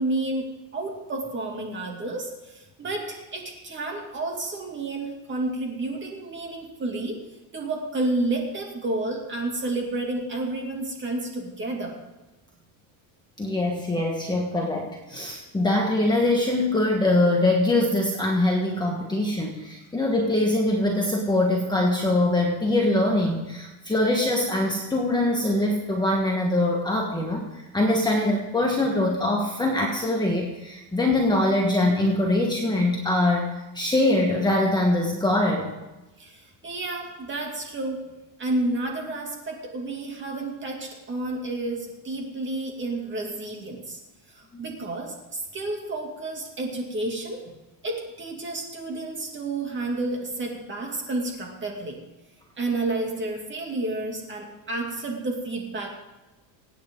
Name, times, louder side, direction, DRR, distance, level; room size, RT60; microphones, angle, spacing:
voice 1, 0.0-7.2 7.5-12.0 36.2-38.1 38.4-44.0 44.3-47.5 47.8-52.0 52.6-55.9, right 2 dB, 25° right, 1 dB, 2.5 m, -30 dB
voice 2, 13.4-35.7 44.5-44.7, left 1 dB, 10° left, -1 dB, 1.4 m, -23 dB
25.0 x 9.2 x 3.8 m, 1.1 s
cardioid pair, 160°, 48 cm